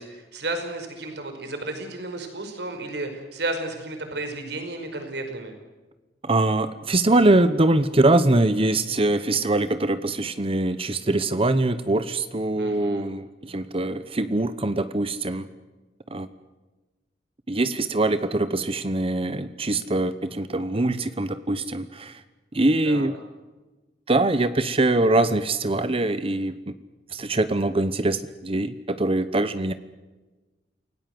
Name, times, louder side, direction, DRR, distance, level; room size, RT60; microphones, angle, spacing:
voice 1, 0.0-5.5 12.6-13.1 22.8-23.1, right 2 dB, 70° right, 6 dB, 5.2 m, -33 dB
voice 2, 6.2-15.5 16.1-16.3 17.5-22.2 22.5-23.2 24.1-26.7 27.1-29.7, right 2 dB, 30° right, 12 dB, 0.9 m, -23 dB
28.5 x 18.5 x 7.9 m, 1.2 s
head